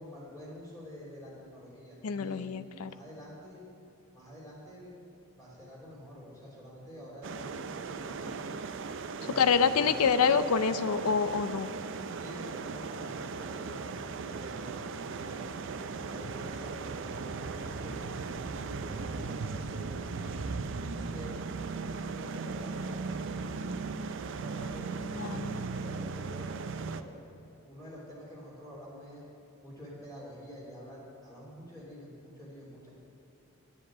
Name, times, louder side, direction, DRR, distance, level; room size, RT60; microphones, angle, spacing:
voice 1, 0.0-2.6 2.8-3.6 4.1-4.9 5.3-8.6 9.2-10.0 12.2-15.4 15.9-18.1 18.6-20.4 20.9-21.3 21.7-23.6 24.4-27.2 27.6-29.2 29.6-32.9, equal, 15° left, -6 dB, 3.0 m, -48 dB
voice 2, 2.0-2.9 9.4-11.7 25.2-25.6, left 6 dB, 85° left, 12 dB, 0.5 m, -26 dB
sound 1, 7.2-27.0, right 4 dB, 55° right, 0.5 m, -37 dB
10.5 x 7.6 x 7.4 m, 3.0 s
head